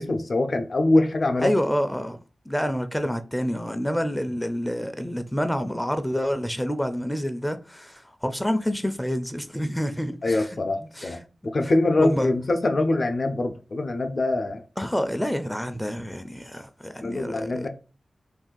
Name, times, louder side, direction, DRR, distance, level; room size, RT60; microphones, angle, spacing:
voice 1, 0.0-1.5 10.2-11.2 11.4-14.6 17.0-17.7, left 2 dB, 60° left, 0.5 m, -23 dB
voice 2, 1.4-2.2 2.5-10.5 10.8-11.5 12.0-12.3 14.8-17.7, equal, 10° left, 0.4 m, -28 dB
2.6 x 2.3 x 3.8 m
cardioid pair, 45°, 0 cm